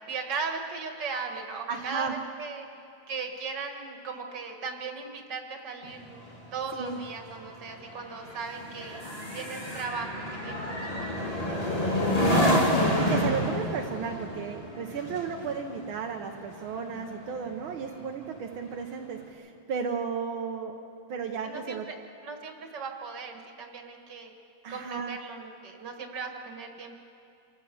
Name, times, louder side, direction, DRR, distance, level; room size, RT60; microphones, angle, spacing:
voice 1, 0.1-2.7 3.1-6.1 6.5-9.0 9.3-11.6 15.4-15.6 21.4-22.0 22.2-24.3 24.7-26.9, right 4 dB, 60° right, 3 dB, 2.4 m, -37 dB
voice 2, 1.7-2.1 6.7-7.0 12.3-20.8 21.1-21.9 24.6-25.2, right 6 dB, 85° right, 3 dB, 1.8 m, -34 dB
sound 1, 5.8-17.5 17.9-18.2, left 1 dB, 20° left, 2.9 m, -29 dB
26.5 x 14.5 x 6.9 m, 2.6 s
omnidirectional pair, 2.2 m